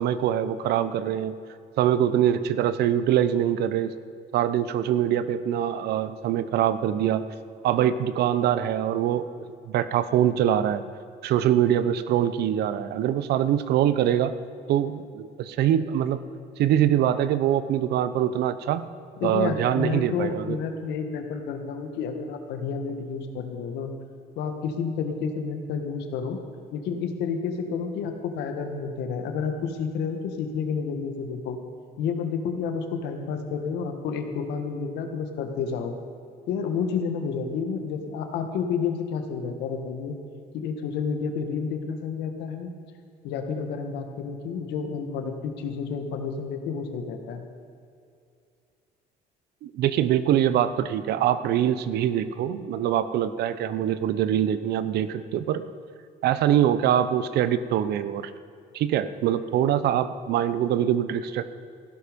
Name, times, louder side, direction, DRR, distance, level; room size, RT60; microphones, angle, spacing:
voice 1, 0.0-1.3 1.8-3.9 4.3-7.2 7.6-9.3 9.7-10.8 11.2-14.3 14.7-16.2 16.6-18.9 19.2-20.6 49.6-55.6 56.2-58.3 58.7-61.4, right 10 dB, 75° right, 13 dB, 0.8 m, -23 dB
voice 2, 19.2-23.9 24.3-26.4 26.7-31.6 32.0-35.9 36.5-40.1 40.5-42.7 43.2-47.4, left 6 dB, 85° left, 6 dB, 1.6 m, -30 dB
15.5 x 12.0 x 5.3 m, 2.4 s
cardioid pair, 110°, 17 cm